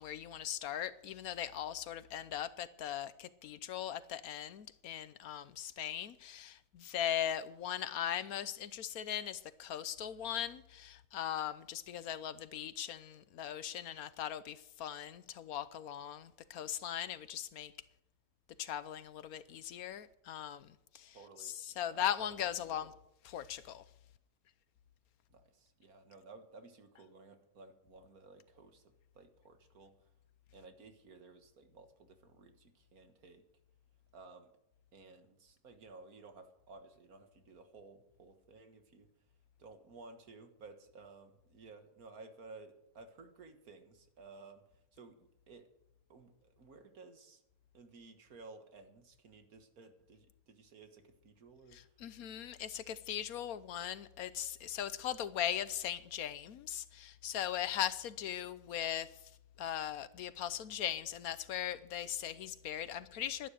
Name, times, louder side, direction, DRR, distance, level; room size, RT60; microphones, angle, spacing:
voice 1, 0.0-17.7 18.6-22.9 23.3-23.8 51.7-59.1 59.6-63.5, left 10 dB, 80° left, 1.2 m, -39 dB
voice 2, 21.1-22.9 25.3-30.0 30.5-33.4 34.1-34.5 34.9-39.1 39.6-45.2 45.5-45.7 46.1-47.4 47.7-51.9, right 3 dB, 80° right, 2.0 m, -56 dB
11.5 x 11.5 x 6.4 m
omnidirectional pair, 1.5 m